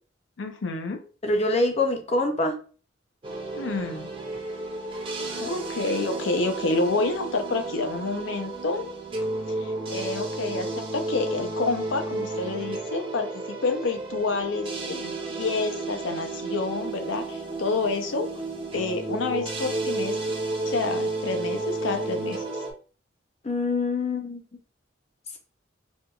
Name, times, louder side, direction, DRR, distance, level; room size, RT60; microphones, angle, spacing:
voice 1, 0.4-1.0 3.5-4.1 5.4-8.9 9.6-18.3 18.7-20.2 20.6-22.4, left 3 dB, 80° left, 6 dB, 0.6 m, -28 dB
voice 2, 1.2-2.6 23.4-24.4, left 2 dB, 35° left, 4 dB, 0.5 m, -24 dB
sound 1, 3.2-22.7, right 2 dB, 30° right, 0.7 m, -32 dB
4.4 x 2.3 x 2.3 m, 0.38 s
head